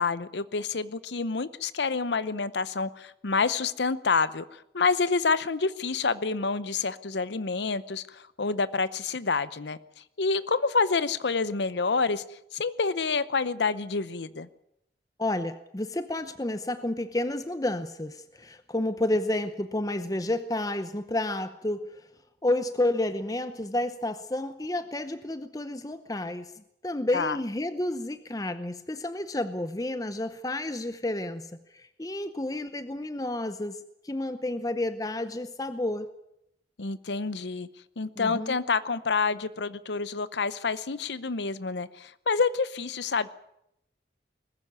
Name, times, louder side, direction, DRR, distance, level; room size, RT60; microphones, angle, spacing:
voice 1, 0.0-9.8 10.2-12.2 12.5-14.5 27.1-27.4 36.8-37.7 38.0-43.3, left 4 dB, 80° left, 16 dB, 0.8 m, -28 dB
voice 2, 15.2-21.9 22.4-26.5 26.8-36.1 38.2-38.6, left 1 dB, 20° left, 11 dB, 0.8 m, -30 dB
20.5 x 14.5 x 9.5 m, 0.81 s
head